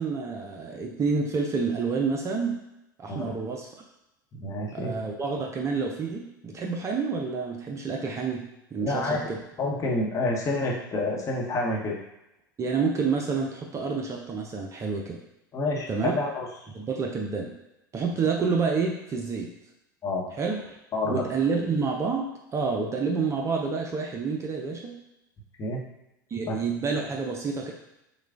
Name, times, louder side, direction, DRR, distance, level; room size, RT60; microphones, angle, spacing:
voice 1, 0.0-2.6 3.0-3.7 4.7-8.4 8.7-9.4 12.6-15.2 15.9-16.1 16.7-17.5 17.9-19.5 20.4-20.7 21.1-25.0 26.3-27.7, right 5 dB, 25° right, 0 dB, 0.6 m, -28 dB
voice 2, 4.3-4.9 8.8-9.2 9.6-11.9 15.5-16.5 20.0-20.3 20.9-21.2 25.6-25.8 26.4-26.5, left 2 dB, 30° left, -2 dB, 1.0 m, -28 dB
6.1 x 2.3 x 2.5 m, 0.89 s
figure-of-eight pair, 85°, 11 cm